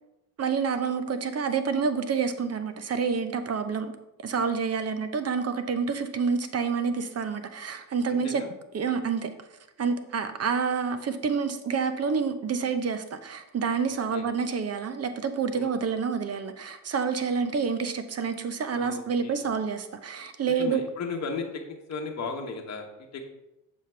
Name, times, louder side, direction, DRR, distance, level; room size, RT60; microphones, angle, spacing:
voice 1, 0.4-3.9 4.2-8.4 8.7-9.3 9.8-20.8, right 5 dB, 35° right, 9 dB, 0.8 m, -28 dB
voice 2, 8.1-8.5 13.9-14.3 15.5-15.7 18.7-19.5 20.5-21.6 21.9-23.2, left 4 dB, 40° left, 1 dB, 1.1 m, -36 dB
7.5 x 5.0 x 3.4 m, 0.91 s
supercardioid pair, 70°, 41 cm